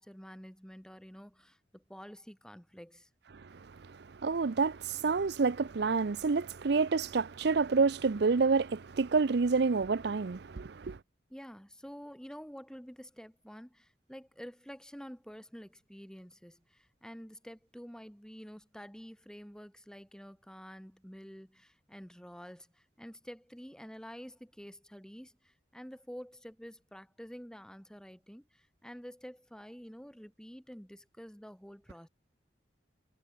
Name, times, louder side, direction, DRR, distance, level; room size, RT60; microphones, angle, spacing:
voice 1, 0.0-3.1 11.3-32.1, equal, 5° left, 4.3 m, -49 dB
voice 2, 3.4-11.0, right 4 dB, 65° right, 0.6 m, -29 dB
head